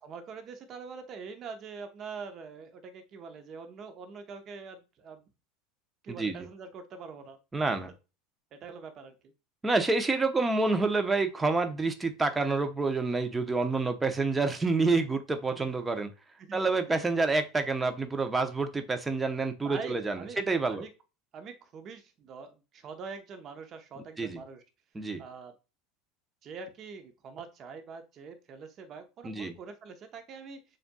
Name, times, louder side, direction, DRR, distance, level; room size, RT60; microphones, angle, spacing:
voice 1, 0.0-5.2 6.0-7.4 8.5-9.3 15.5-15.8 16.4-16.6 19.6-20.9 21.3-24.6 25.2-25.5 26.4-30.6, right 5 dB, 45° right, 7 dB, 0.9 m, -44 dB
voice 2, 6.1-6.5 7.5-7.9 9.6-16.1 16.5-20.8 24.2-24.4 24.9-25.2 29.2-29.6, right 3 dB, 15° right, 7 dB, 0.7 m, -28 dB
7.0 x 2.5 x 2.3 m, 0.29 s
hypercardioid pair, 90°, 0 cm